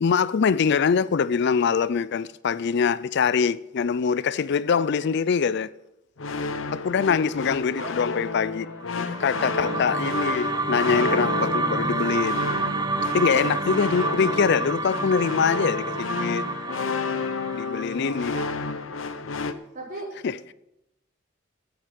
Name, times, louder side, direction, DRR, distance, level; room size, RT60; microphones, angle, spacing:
voice 1, 0.0-5.7 6.7-8.7 9.0-12.4 13.1-16.4 17.5-18.4 20.2-20.4, left 6 dB, 60° left, 0.4 m, -23 dB
sound 1, 6.2-19.5, left 4 dB, 80° left, 0.8 m, -31 dB
sound 2, 8.8-19.1, right 3 dB, 20° right, 0.6 m, -29 dB
voice 2, 13.1-13.5 17.8-18.5 19.7-20.1, right 2 dB, 45° right, 4.3 m, -37 dB
8.7 x 8.5 x 9.0 m
head